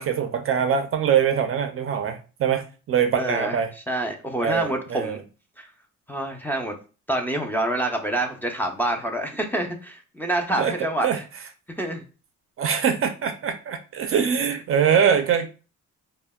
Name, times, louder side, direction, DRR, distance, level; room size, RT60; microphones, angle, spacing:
voice 1, 0.0-3.7 4.4-5.2 10.6-10.7 11.0-11.2 12.6-15.5, right 8 dB, 45° right, 8 dB, 0.4 m, -23 dB
voice 2, 3.2-3.6 3.9-5.2 5.6-5.7 6.1-6.8 7.1-11.1 11.8-12.0, right 1 dB, 5° left, 1 dB, 0.5 m, -27 dB
3.2 x 2.1 x 2.2 m, 0.34 s
cardioid pair, 90°, 30 cm